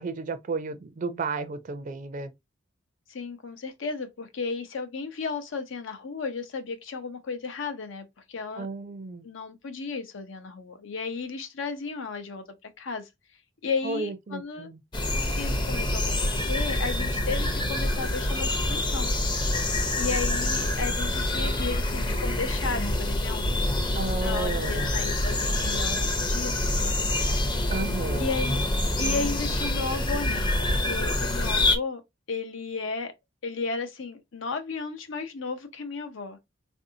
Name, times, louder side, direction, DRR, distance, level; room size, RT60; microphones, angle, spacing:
voice 1, 0.0-2.3 8.5-9.3 13.8-14.8 23.9-25.0 27.7-28.3, right 3 dB, 45° right, 0.4 m, -33 dB
voice 2, 3.1-8.7 9.2-12.4 12.8-13.1 13.6-14.7 15.4-19.1 19.9-23.4 24.1-27.3 27.6-27.7 28.2-28.6 29.0-32.0 32.3-33.1 33.4-36.4, left 4 dB, 85° left, 0.7 m, -34 dB
sound 1, 14.9-31.8, left 1 dB, 25° left, 0.5 m, -26 dB
3.5 x 2.6 x 2.7 m
head